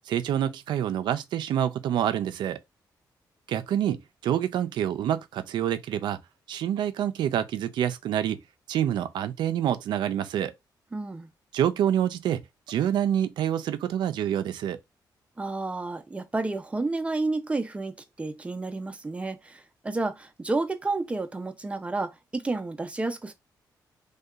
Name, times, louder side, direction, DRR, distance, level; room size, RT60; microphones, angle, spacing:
voice 1, 0.1-2.6 3.5-4.0 4.2-6.2 6.5-8.4 8.7-10.5 11.5-12.4 12.7-14.8, right 10 dB, 85° right, 0.4 m, -27 dB
voice 2, 10.9-11.3 15.4-23.3, right 3 dB, 15° right, 0.5 m, -31 dB
2.7 x 2.2 x 2.3 m
cardioid pair, 105°, 8 cm